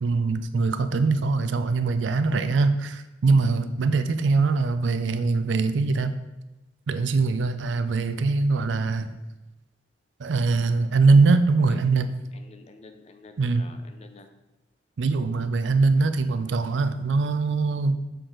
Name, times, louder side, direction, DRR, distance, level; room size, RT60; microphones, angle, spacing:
voice 1, 0.0-6.2 6.9-9.2 10.2-12.1 13.4-13.6 15.0-18.0, right 3 dB, 85° right, 10 dB, 0.5 m, -22 dB
voice 2, 12.3-14.3, left 3 dB, 35° left, 6 dB, 0.5 m, -49 dB
6.6 x 3.9 x 3.8 m, 1.0 s
head